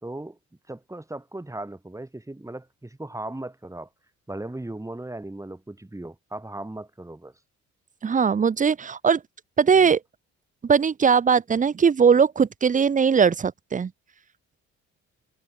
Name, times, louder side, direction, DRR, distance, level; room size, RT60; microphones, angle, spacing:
voice 1, 0.0-0.4 0.7-3.9 4.3-7.3 9.7-9.9, right 2 dB, 10° right, 4.0 m, -37 dB
voice 2, 8.0-9.2 9.6-10.0 10.6-13.9, right 6 dB, 25° right, 0.7 m, -20 dB
cardioid pair, 90°, 30 cm